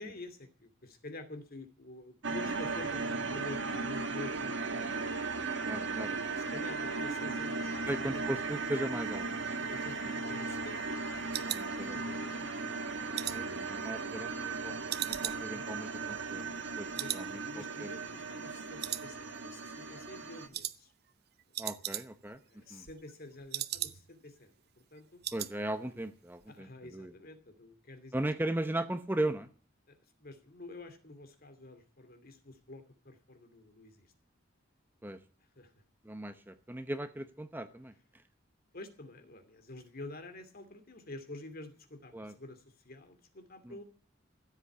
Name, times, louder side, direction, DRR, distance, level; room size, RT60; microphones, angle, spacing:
voice 1, 0.0-5.1 6.3-8.3 9.6-10.9 11.4-12.5 15.2-15.7 16.9-20.9 22.5-24.5 24.9-25.2 26.5-28.1 29.9-34.1 35.6-35.7 38.7-43.8, left 2 dB, 50° left, 8 dB, 2.7 m, -49 dB
sound 1, 2.2-20.5, right 4 dB, 70° right, 1.7 m, -37 dB
voice 2, 5.6-6.1 7.9-9.3 11.5-12.0 13.3-14.7 15.0-17.9 21.6-22.4 22.7-22.9 25.3-27.1 28.1-29.5 35.0-35.2 36.0-37.9 42.1-42.3 43.6-43.7, right 1 dB, 10° right, 9 dB, 0.9 m, -37 dB
sound 2, 9.6-12.4 12.7-14.5 14.9-16.7 16.9-17.3 17.6-17.7 18.1-18.5 18.8-19.6 19.9-20.1 20.5-20.8 21.1-21.2 21.4-22.4 22.7-24.3 24.6-24.7 24.9-25.6 25.8-26.1 26.4-26.5, right 13 dB, 55° right, 0.7 m, -39 dB
15.0 x 8.4 x 8.4 m, 0.41 s
head